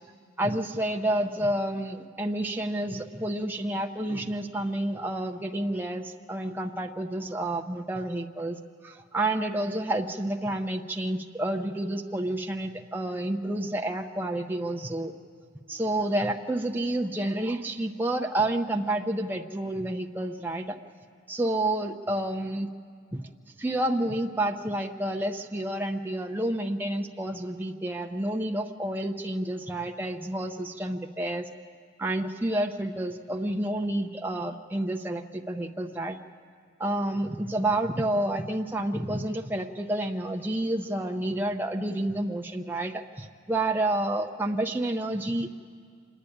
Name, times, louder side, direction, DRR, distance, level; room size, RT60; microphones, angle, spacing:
voice 1, 0.4-15.1 15.7-20.8 21.3-22.7 23.1-23.2 23.6-31.5 32.0-36.2 36.8-45.5, right 1 dB, 10° right, 2 dB, 0.6 m, -29 dB
26.0 x 10.0 x 9.9 m, 2.2 s
head